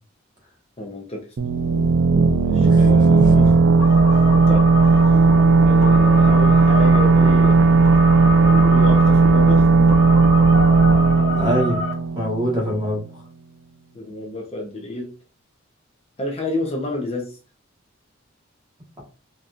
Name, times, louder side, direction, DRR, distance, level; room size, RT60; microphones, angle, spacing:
voice 1, 0.8-1.2 2.4-3.5 4.3-5.0 5.6-7.6 8.3-9.7 13.9-15.1 16.2-17.4, left 2 dB, 30° left, 1 dB, 0.7 m, -29 dB
sound 1, 1.4-12.9, right 3 dB, 80° right, 0.5 m, -15 dB
voice 2, 2.6-3.5 11.3-11.8 12.1-13.0, equal, 20° right, -3 dB, 1.4 m, -24 dB
sound 2, 3.8-11.9, left 3 dB, 85° left, 0.9 m, -29 dB
4.2 x 3.0 x 2.5 m, 0.35 s
head